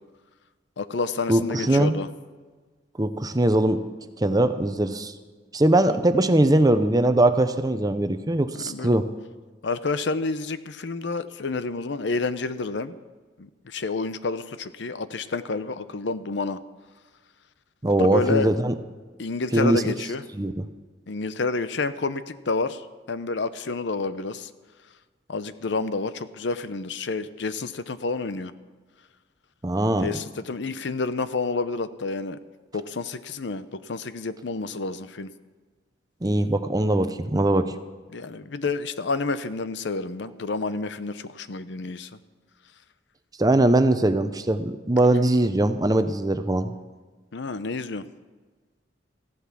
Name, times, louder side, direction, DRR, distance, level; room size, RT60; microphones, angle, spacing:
voice 1, 0.8-2.1 5.8-6.0 8.6-9.0 9.6-12.9 13.4-16.6 17.9-18.5 19.2-20.2 21.1-22.8 23.1-24.5 25.3-28.5 30.0-32.4 32.7-35.3 38.1-42.1 47.3-48.1, left 3 dB, 70° left, 13 dB, 0.7 m, -29 dB
voice 2, 1.3-2.0 3.0-3.8 4.2-5.1 5.5-9.1 17.8-18.7 19.5-19.9 20.3-20.6 29.6-30.1 36.2-37.7 43.4-46.7, right 1 dB, 20° right, 10 dB, 0.7 m, -21 dB
15.0 x 11.5 x 6.1 m, 1.4 s
head